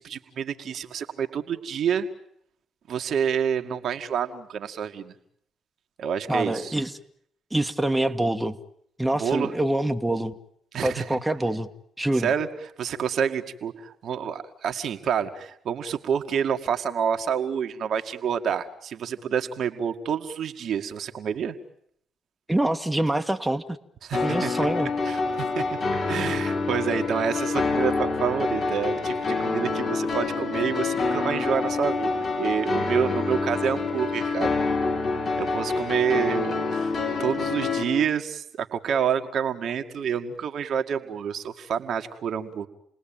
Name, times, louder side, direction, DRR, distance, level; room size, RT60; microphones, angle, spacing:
voice 1, 0.0-2.1 2.9-5.1 6.0-6.7 9.1-9.5 10.7-11.2 12.1-12.5 12.8-21.6 24.0-24.7 25.0-25.8 26.1-34.5 35.4-36.9 37.2-42.7, right 7 dB, 65° right, 6 dB, 2.0 m, -28 dB
voice 2, 6.3-6.9 7.5-8.6 9.0-10.4 10.8-11.7 12.0-12.3 22.5-23.6 24.2-24.9, right 1 dB, 10° right, 6 dB, 1.8 m, -25 dB
sound 1, 24.1-37.8, left 4 dB, 55° left, 6.7 m, -27 dB
29.5 x 20.0 x 9.0 m, 0.71 s
hypercardioid pair, 45°, 0 cm